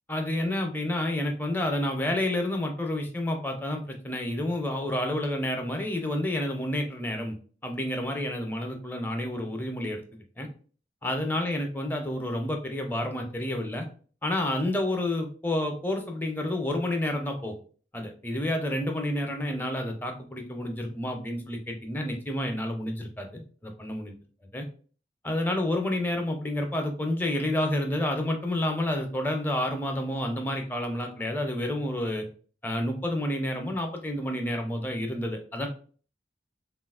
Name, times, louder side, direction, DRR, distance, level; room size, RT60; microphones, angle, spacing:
voice 1, 0.1-7.4 7.6-10.5 11.0-13.9 14.2-17.5 17.9-24.1 24.5-24.6 25.2-32.3 32.6-35.7, left 1 dB, 10° left, 3 dB, 0.5 m, -29 dB
3.7 x 2.3 x 2.3 m, 0.41 s
head